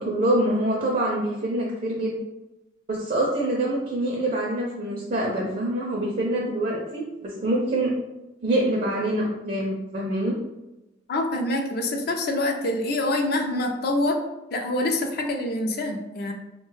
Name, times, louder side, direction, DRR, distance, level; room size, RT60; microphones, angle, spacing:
voice 1, 0.0-2.2 2.9-7.9 8.4-10.3, right 1 dB, 45° right, -2 dB, 0.4 m, -25 dB
voice 2, 11.1-14.2 14.5-16.3, left 1 dB, 55° left, 4 dB, 0.4 m, -25 dB
3.0 x 2.1 x 3.1 m, 1.0 s
head